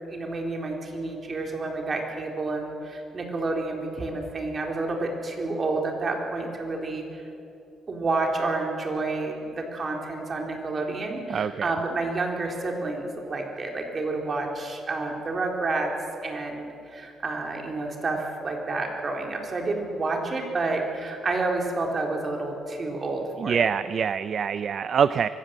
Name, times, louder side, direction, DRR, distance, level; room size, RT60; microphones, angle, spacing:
voice 1, 0.1-7.2 7.9-15.9 16.2-23.7, right 3 dB, 40° right, 1 dB, 4.0 m, -29 dB
voice 2, 11.3-11.7 23.4-25.3, right 7 dB, 55° right, 14 dB, 0.5 m, -25 dB
24.0 x 16.0 x 7.7 m, 2.7 s
cardioid pair, 90°, 0 cm